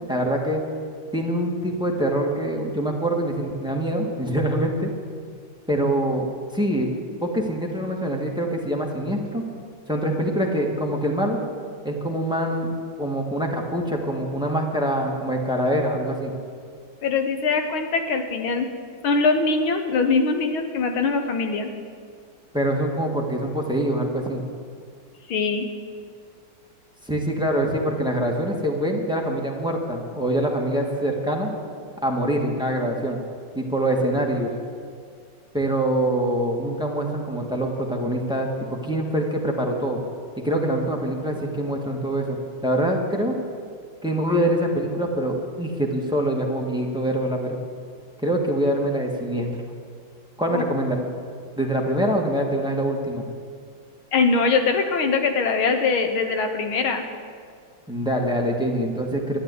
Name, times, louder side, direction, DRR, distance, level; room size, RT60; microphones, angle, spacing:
voice 1, 0.1-0.6 1.1-4.9 5.7-6.3 6.5-6.9 7.2-9.4 9.9-11.4 11.8-16.3 22.5-24.4 27.1-31.5 32.0-33.2 33.5-34.5 35.5-40.0 40.4-43.4 44.0-47.6 48.2-49.5 50.4-51.1 51.6-53.2 57.9-59.4, right 1 dB, 5° right, 1 dB, 1.4 m, -24 dB
voice 2, 17.0-18.7 19.0-21.7 25.3-25.7 50.5-50.6 54.1-57.0, left 4 dB, 80° left, 5 dB, 2.1 m, -22 dB
13.0 x 9.8 x 9.6 m, 2.1 s
omnidirectional pair, 2.2 m